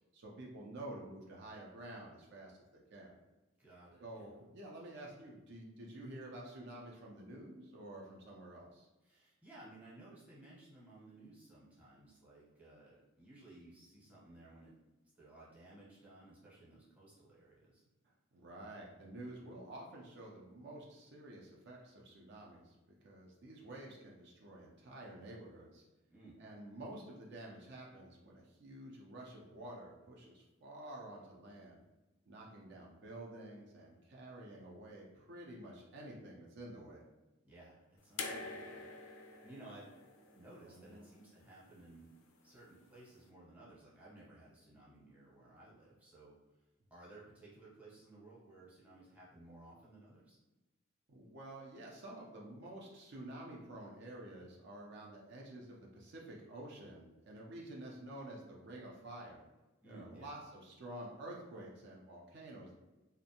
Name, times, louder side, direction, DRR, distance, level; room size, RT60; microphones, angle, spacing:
voice 1, 0.1-3.1 4.0-8.9 18.0-22.8 23.0-25.8 26.4-31.8 32.3-37.0 40.7-41.0 51.1-59.5 59.9-62.7, right 1 dB, 55° right, -2 dB, 0.4 m, -50 dB
voice 2, 3.6-4.3 9.0-14.7 15.2-17.8 26.1-26.4 37.4-40.0 40.3-42.1 42.4-46.4 46.9-50.4 59.8-60.3, right 2 dB, 5° right, -8 dB, 0.7 m, -57 dB
sound 1, 38.2-41.3 42.5-42.6, left 3 dB, 90° left, 0.4 m, -46 dB
2.5 x 2.1 x 2.7 m, 1.1 s
head